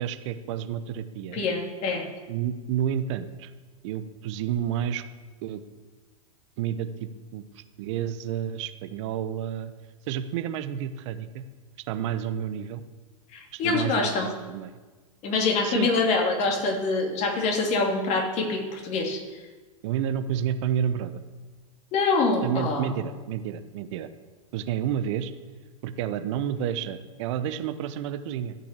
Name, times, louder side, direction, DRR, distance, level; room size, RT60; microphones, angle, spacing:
voice 1, 0.0-1.4 2.3-3.5 3.8-5.0 5.4-5.6 6.6-9.7 10.1-11.5 11.9-12.8 13.5-14.7 15.6-15.9 19.8-21.2 22.4-24.1 24.5-25.3 25.8-28.6, right 9 dB, 55° right, 11 dB, 0.9 m, -30 dB
voice 2, 1.3-2.1 13.3-14.3 15.2-19.4 21.9-22.9, left 3 dB, 40° left, 2 dB, 2.8 m, -25 dB
13.5 x 6.0 x 8.2 m, 1.3 s
hypercardioid pair, 105°, 18 cm